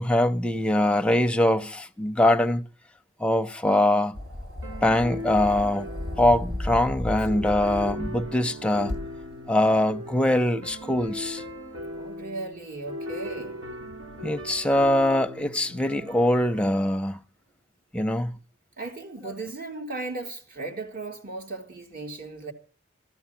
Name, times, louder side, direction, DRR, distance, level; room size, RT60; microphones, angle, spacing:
voice 1, 0.0-2.7 3.2-4.2 4.8-5.9 6.2-9.0 9.5-11.4 14.2-17.2 17.9-18.4, left 1 dB, 5° left, 0.7 m, -23 dB
sound 1, 4.1-8.3 8.9-9.0, left 1 dB, 70° right, 6.6 m, -34 dB
sound 2, 4.6-16.6, left 1 dB, 90° right, 5.4 m, -39 dB
voice 2, 11.9-13.6 18.8-22.5, right 3 dB, 50° right, 2.9 m, -36 dB
16.0 x 14.0 x 5.8 m
head